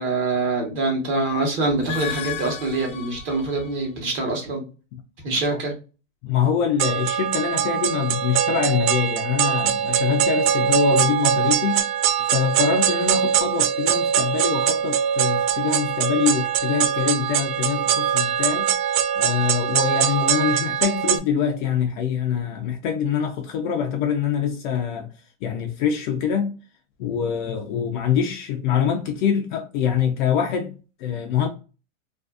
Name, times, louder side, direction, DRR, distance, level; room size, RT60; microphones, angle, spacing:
voice 1, 0.0-4.6 5.2-5.7, right 3 dB, 30° right, 1.0 m, -24 dB
sound 1, 1.7-3.9, left 10 dB, 85° left, 0.9 m, -34 dB
voice 2, 6.2-11.8 12.3-18.7 19.2-25.1 25.4-26.6 27.0-31.5, left 8 dB, 40° left, 0.4 m, -24 dB
sound 2, 6.8-21.2, right 9 dB, 80° right, 0.5 m, -22 dB
2.5 x 2.4 x 2.3 m
supercardioid pair, 140°, 40 cm